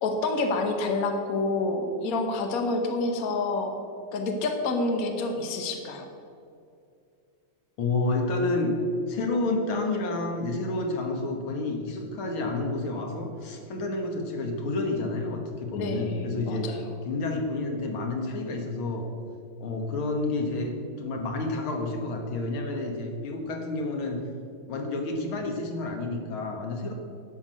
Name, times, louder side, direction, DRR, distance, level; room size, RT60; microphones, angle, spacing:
voice 1, 0.0-3.8 4.1-6.1 15.7-16.8, left 3 dB, 50° left, 4 dB, 1.4 m, -28 dB
voice 2, 7.8-8.7 9.1-16.7 17.1-19.1 19.6-24.2 24.6-26.9, left 2 dB, 85° left, 3 dB, 2.2 m, -29 dB
11.0 x 6.0 x 7.5 m, 2.4 s
omnidirectional pair, 2.2 m